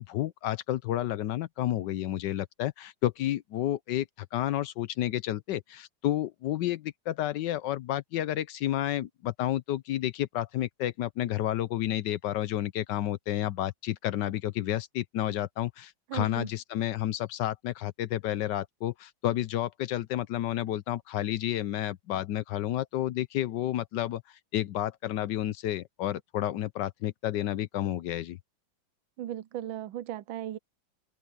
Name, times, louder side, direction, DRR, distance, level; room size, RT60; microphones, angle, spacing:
voice 1, 0.0-28.4, left 13 dB, 70° left, 1.2 m, -31 dB
voice 2, 16.1-16.5 29.2-30.6, right 12 dB, 85° right, 1.5 m, -36 dB
open air
omnidirectional pair, 2.1 m